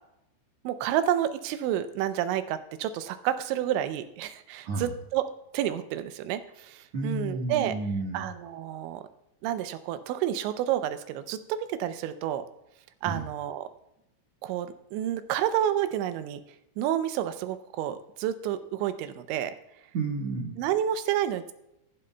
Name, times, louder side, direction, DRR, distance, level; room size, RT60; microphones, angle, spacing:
voice 1, 0.6-5.3 5.5-7.7 8.1-9.0 9.4-12.4 13.0-13.7 14.4-16.4 16.8-19.5 20.6-21.5, right 11 dB, 85° right, 10 dB, 3.0 m, -29 dB
voice 2, 6.9-8.2 13.0-13.2 19.9-20.6, right 3 dB, 60° right, -1 dB, 1.8 m, -31 dB
15.0 x 11.0 x 2.2 m, 0.86 s
omnidirectional pair, 5.3 m